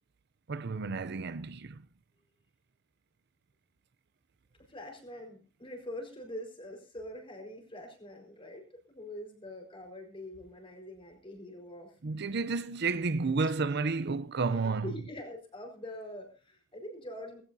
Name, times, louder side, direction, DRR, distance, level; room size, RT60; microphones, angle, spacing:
voice 1, 0.5-1.8 12.0-14.9, right 4 dB, 55° right, 0.6 m, -31 dB
voice 2, 4.6-11.9 13.4-13.5 14.5-17.4, left 1 dB, 25° left, 4.5 m, -44 dB
19.0 x 16.0 x 2.7 m
head